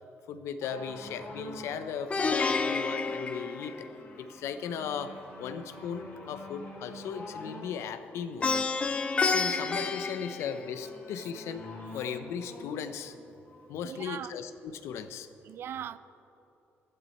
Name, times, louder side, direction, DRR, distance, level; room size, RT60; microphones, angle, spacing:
voice 1, 0.3-3.9 4.2-8.7 9.2-13.1 13.7-15.3, left 7 dB, 85° left, 11 dB, 0.7 m, -37 dB
sound 1, 0.6-14.2 14.9-15.0, left 2 dB, 50° left, 3.1 m, -48 dB
Plucked string instrument, 2.1-4.3 8.4-11.0, left 4 dB, 25° left, 0.6 m, -30 dB
voice 2, 13.8-14.3 15.5-16.0, right 10 dB, 60° right, 15 dB, 0.4 m, -39 dB
15.0 x 11.0 x 4.2 m, 3.0 s
cardioid pair, 140°, 5 cm